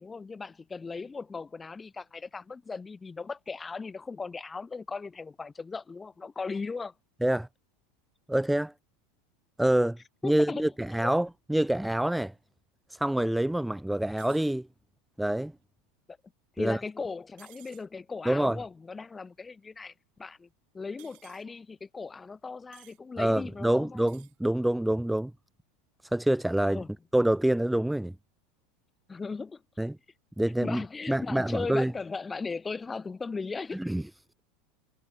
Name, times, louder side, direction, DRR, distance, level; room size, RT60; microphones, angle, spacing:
voice 1, 0.0-6.9 10.2-10.7 11.0-11.1 16.6-20.5 20.7-24.0 26.7-26.9 29.1-29.6 30.6-33.9, left 4 dB, 20° left, 1.6 m, -37 dB
voice 2, 8.3-8.7 9.6-10.0 10.2-12.3 12.9-14.7 15.2-15.5 16.6-16.8 18.3-18.6 23.2-25.3 26.1-26.8 27.1-28.1 29.8-30.0 30.4-30.8 31.1-31.9 33.7-34.0, right 1 dB, 5° right, 0.5 m, -26 dB
sound 1, 14.2-14.6 17.4-17.9 21.0-21.4 22.7-23.0 24.0-24.4, right 34 dB, 55° right, 2.8 m, -55 dB
figure-of-eight pair, 80°, 0 cm